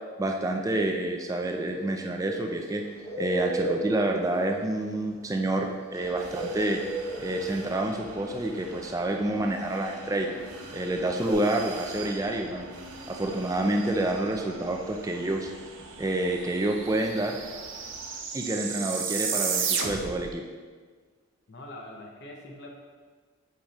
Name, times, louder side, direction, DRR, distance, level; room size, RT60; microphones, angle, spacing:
voice 1, 0.2-2.8 3.2-6.8 7.2-10.3 10.7-12.7 13.1-15.5 16.0-17.4 18.3-20.4, right 1 dB, 15° right, 3 dB, 0.3 m, -28 dB
Bird, 1.4-11.3, right 1 dB, 30° left, 1.4 m, -35 dB
sound 1, 5.9-18.2, right 2 dB, 80° right, 0.8 m, -45 dB
sound 2, 15.8-15.9 16.1-20.3, right 6 dB, 55° right, 0.6 m, -32 dB
voice 2, 21.5-22.7, left 1 dB, 50° left, 0 dB, 0.7 m, -43 dB
7.9 x 4.9 x 2.9 m, 1.5 s
head